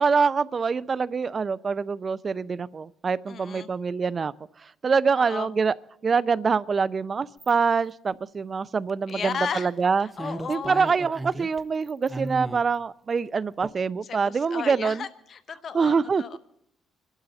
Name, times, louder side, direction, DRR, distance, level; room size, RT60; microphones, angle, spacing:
voice 1, 0.0-4.3 4.6-5.7 6.0-10.1 10.5-15.1 15.7-16.2, right 5 dB, 40° right, 20 dB, 0.5 m, -25 dB
voice 2, 3.3-3.7 5.1-5.5 9.1-9.7 10.0-10.9 14.1-16.4, left 6 dB, 55° left, 12 dB, 1.1 m, -34 dB
sound 1, 7.4-7.5 8.9-9.2 9.8-9.9 10.1-11.6 11.9-12.7 13.6-13.7, right 2 dB, 15° right, 0.9 m, -35 dB
26.0 x 12.0 x 4.2 m, 0.74 s
cardioid pair, 90°, 0 cm